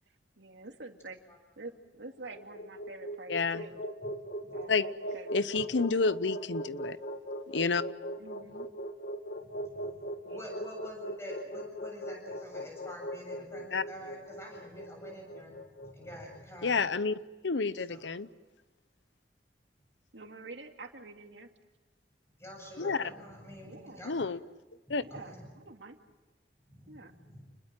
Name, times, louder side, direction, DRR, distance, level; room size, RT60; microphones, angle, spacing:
voice 1, 0.4-1.2 1.6-3.8 4.5-5.3 8.2-8.7 10.2-10.6 20.1-21.5 23.7-24.2 25.0-26.0 26.9-27.1, right 3 dB, 85° right, 4 dB, 2.4 m, -47 dB
sound 1, 2.1-16.4, equal, 55° left, 1.3 m, -40 dB
voice 2, 3.3-3.6 4.7-4.8 5.3-7.0 7.5-7.8 13.7-13.8 16.6-17.2 17.4-18.3 22.8-23.1 24.0-24.4 24.9-25.0, left 4 dB, 85° left, 16 dB, 0.8 m, -29 dB
voice 3, 9.4-10.0 10.3-16.9 17.9-18.1 22.4-24.4 24.9-25.5 26.7-27.4, equal, 15° left, 1 dB, 7.7 m, -47 dB
29.0 x 21.0 x 7.6 m, 1.2 s
head